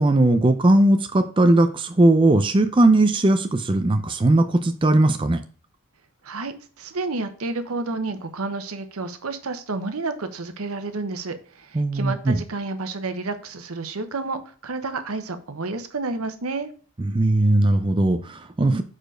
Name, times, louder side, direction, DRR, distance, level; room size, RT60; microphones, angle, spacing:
voice 1, 0.0-5.4 11.7-12.4 17.0-18.8, right 2 dB, 25° right, 0.4 m, -18 dB
voice 2, 6.2-16.7, right 3 dB, 90° right, 0.9 m, -30 dB
4.9 x 4.6 x 6.1 m
head